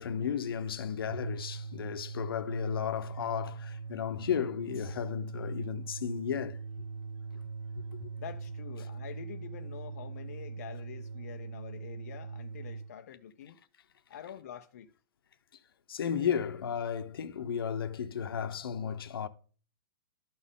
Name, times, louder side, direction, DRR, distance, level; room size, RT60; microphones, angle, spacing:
voice 1, 0.0-6.6 8.0-8.1 15.9-19.3, left 7 dB, 80° left, 0.7 m, -34 dB
sound 1, 1.0-12.9, right 4 dB, 45° right, 0.5 m, -41 dB
voice 2, 8.2-13.6 14.1-14.9, left 9 dB, 40° left, 0.5 m, -46 dB
12.5 x 4.3 x 3.6 m
hypercardioid pair, 180°, 12 cm